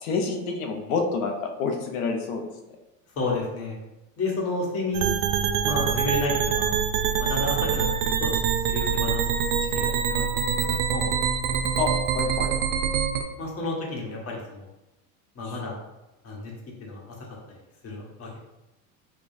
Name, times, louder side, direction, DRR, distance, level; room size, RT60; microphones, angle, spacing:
voice 1, 0.0-2.5 11.8-12.5 15.4-15.6, left 4 dB, 85° left, 3 dB, 0.8 m, -28 dB
voice 2, 3.2-3.8 4.2-5.1 5.6-6.7 7.2-8.3 8.7-9.3 9.6-10.4 10.9-11.1 13.4-14.7 15.3-15.8 16.2-16.5 16.8-17.1 17.8-18.4, left 2 dB, 35° left, -2 dB, 1.1 m, -31 dB
sound 1, 4.9-13.2, right 7 dB, 60° right, 0.5 m, -25 dB
5.1 x 2.3 x 2.6 m, 0.98 s
supercardioid pair, 120°, 41 cm